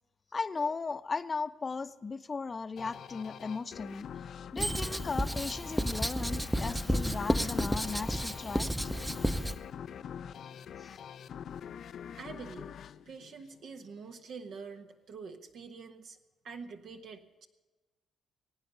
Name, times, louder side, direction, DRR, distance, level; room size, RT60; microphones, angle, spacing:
voice 1, 0.3-4.1 4.5-8.7 10.8-11.0, left 4 dB, 30° left, 11 dB, 0.7 m, -36 dB
sound 1, 2.8-14.0, left 8 dB, 65° left, 0.5 m, -44 dB
Writing, 4.6-9.6, equal, 5° right, 0.7 m, -32 dB
Bicycle bell, 4.6-5.2, right 3 dB, 85° right, 3.6 m, -38 dB
voice 2, 12.1-12.7 13.1-16.2 16.4-17.5, right 5 dB, 65° right, 5 dB, 1.2 m, -46 dB
22.0 x 9.1 x 6.8 m, 1.2 s
cardioid pair, 90°, 0 cm